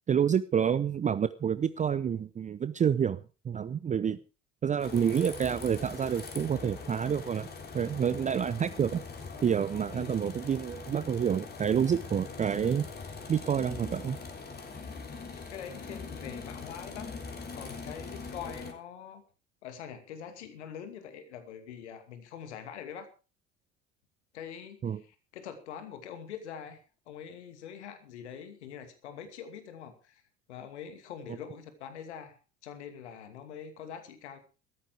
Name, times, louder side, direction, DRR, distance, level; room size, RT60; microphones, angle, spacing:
voice 1, 0.1-3.2 3.4-4.2 4.6-7.5 7.7-9.0 9.4-12.9 13.3-14.2 24.8-25.0, right 8 dB, 20° right, 15 dB, 0.6 m, -28 dB
sound 1, 4.8-18.7, left 4 dB, 25° left, 3.6 m, -42 dB
voice 2, 15.3-17.1 17.5-19.2 19.6-23.1 24.3-30.2 30.5-32.4 32.6-34.4, left 8 dB, 70° left, 9 dB, 2.6 m, -44 dB
14.5 x 14.0 x 4.7 m, 0.33 s
figure-of-eight pair, 65°, 36 cm